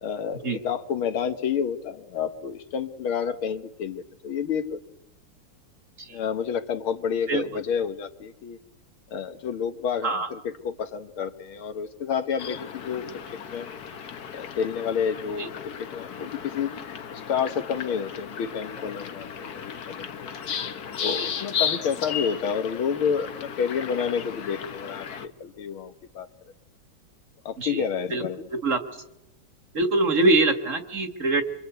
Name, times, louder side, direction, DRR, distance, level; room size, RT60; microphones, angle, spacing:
voice 1, 0.0-4.8 6.1-8.6 9.1-13.1 13.5-13.7 14.3-16.7 17.1-20.3 21.0-26.3 27.5-28.5, left 7 dB, 75° left, 9 dB, 2.1 m, -29 dB
sound 1, 12.4-25.3, left 7 dB, 50° left, 1.5 m, -35 dB
voice 2, 29.7-31.4, right 2 dB, 40° right, 7 dB, 1.9 m, -23 dB
25.5 x 25.0 x 8.1 m, 0.85 s
omnidirectional pair, 2.4 m